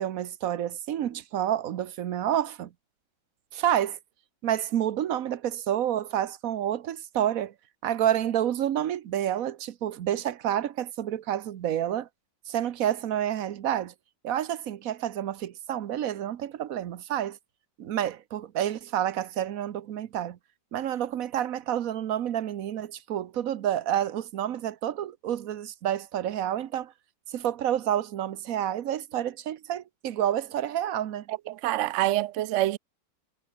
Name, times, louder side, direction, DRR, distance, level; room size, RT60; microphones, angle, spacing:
voice 1, 0.0-2.7 3.5-4.0 4.4-7.5 7.8-12.1 12.5-13.9 14.2-17.4 17.8-20.4 20.7-26.9 27.3-31.3, right 10 dB, 55° right, 1.1 m, -29 dB
voice 2, 31.3-32.8, right 15 dB, 80° right, 0.6 m, -26 dB
omnidirectional pair, 2.0 m